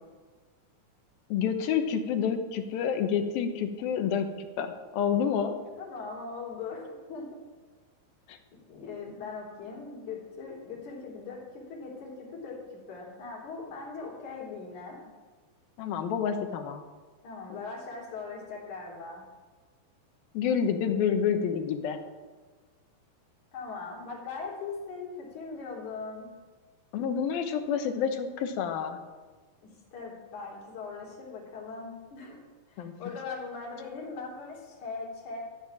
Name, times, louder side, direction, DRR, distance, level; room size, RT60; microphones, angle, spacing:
voice 1, 1.3-5.5 8.3-8.4 15.8-16.8 20.3-22.0 26.9-29.0 32.8-32.9, left 7 dB, 85° left, 6 dB, 2.9 m, -28 dB
voice 2, 5.8-7.3 8.7-15.0 17.2-19.2 23.5-26.3 29.6-32.4 32.7-35.4, left 4 dB, 55° left, -3 dB, 4.8 m, -40 dB
14.5 x 9.5 x 7.2 m, 1.4 s
omnidirectional pair, 4.2 m